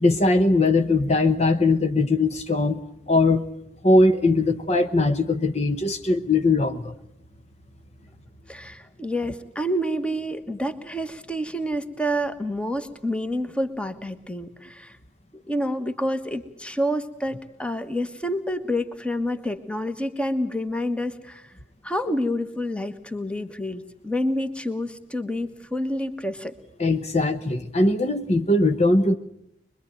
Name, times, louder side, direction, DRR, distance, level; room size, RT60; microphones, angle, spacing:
voice 1, 0.0-2.8 3.1-3.4 3.8-6.9 26.8-29.2, left 2 dB, 35° left, 8 dB, 1.0 m, -20 dB
voice 2, 8.5-15.0 15.3-21.5 21.8-26.5, equal, 5° left, 10 dB, 1.4 m, -28 dB
24.0 x 23.0 x 9.1 m, 0.74 s
head